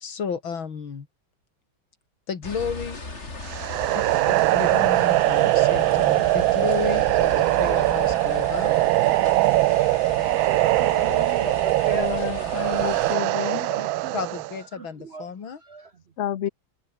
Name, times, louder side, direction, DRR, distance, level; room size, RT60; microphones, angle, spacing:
voice 1, 0.0-1.1 2.3-3.0 3.9-8.8 14.1-15.6, left 6 dB, 90° left, 3.1 m, -32 dB
sound 1, 2.4-13.2, left 2 dB, 35° left, 4.0 m, -37 dB
sound 2, 3.5-14.6, right 17 dB, 90° right, 1.4 m, -21 dB
voice 2, 10.6-12.7 13.3-14.4 14.7-15.3 15.6-16.0, right 4 dB, 45° right, 0.8 m, -35 dB
voice 3, 11.9-13.7 16.2-16.5, left 10 dB, 60° left, 0.7 m, -30 dB
omnidirectional pair, 2.1 m